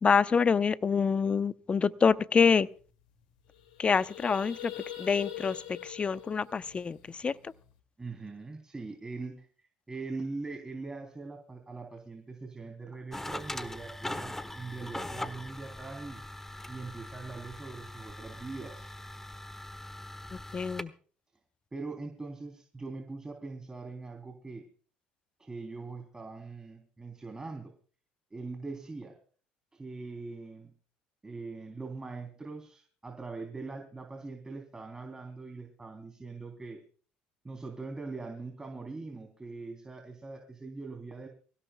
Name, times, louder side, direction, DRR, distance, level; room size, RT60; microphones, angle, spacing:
voice 1, 0.0-2.7 3.8-4.7 5.0-7.5 20.3-20.9, left 6 dB, 30° left, 0.8 m, -26 dB
sound 1, 2.5-2.6 2.8-3.0 3.4-7.7, left 11 dB, 90° left, 2.1 m, -44 dB
voice 2, 8.0-16.2 16.7-18.9 21.7-24.7 25.4-27.7 28.3-29.2 29.7-30.7 31.2-36.8 37.4-41.3, right 3 dB, 20° right, 3.4 m, -42 dB
sound 2, 13.1-20.8, left 1 dB, 10° left, 1.3 m, -41 dB
26.0 x 16.5 x 2.3 m
hypercardioid pair, 70°, 4 cm